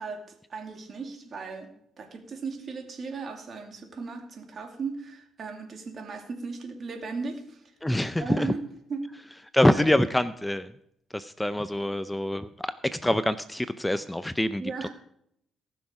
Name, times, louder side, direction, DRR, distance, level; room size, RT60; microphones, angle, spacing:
voice 1, 0.0-1.7 2.0-7.6 8.2-8.6 8.9-9.1 9.6-10.1 14.6-14.9, right 4 dB, 50° right, 4 dB, 2.4 m, -36 dB
voice 2, 7.8-8.5 9.5-10.7 11.1-14.9, left 1 dB, 10° left, 13 dB, 0.5 m, -25 dB
18.5 x 6.3 x 4.8 m, 0.72 s
cardioid pair, 90°, 0 cm